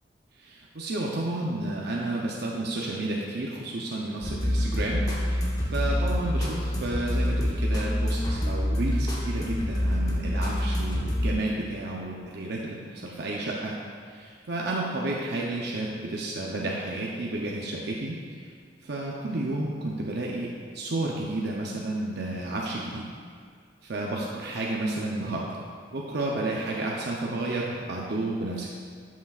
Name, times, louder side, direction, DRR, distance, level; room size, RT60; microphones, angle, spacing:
voice 1, 0.4-5.5 5.7-13.7 14.1-18.5 18.8-23.0 23.8-25.6 25.9-28.7, right 2 dB, 60° right, -3 dB, 0.7 m, -31 dB
sound 1, 4.2-11.3, equal, 20° left, 1.1 m, -26 dB
11.5 x 6.1 x 2.4 m, 2.1 s
head